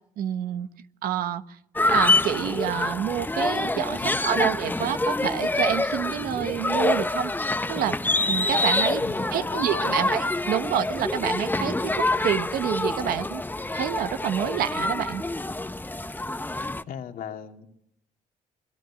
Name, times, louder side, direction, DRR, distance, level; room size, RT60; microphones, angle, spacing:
voice 1, 0.2-0.7 1.0-1.4 1.8-8.0 8.3-9.0 9.3-13.4 13.7-15.2, right 10 dB, 85° right, 10 dB, 1.4 m, -28 dB
sound 1, 1.8-16.8, left 2 dB, 15° left, 1.0 m, -26 dB
voice 2, 4.0-4.5 9.0-10.2 16.9-17.7, left 8 dB, 75° left, 4 dB, 2.7 m, -38 dB
27.0 x 20.5 x 9.0 m, 0.73 s
cardioid pair, 75°, 15 cm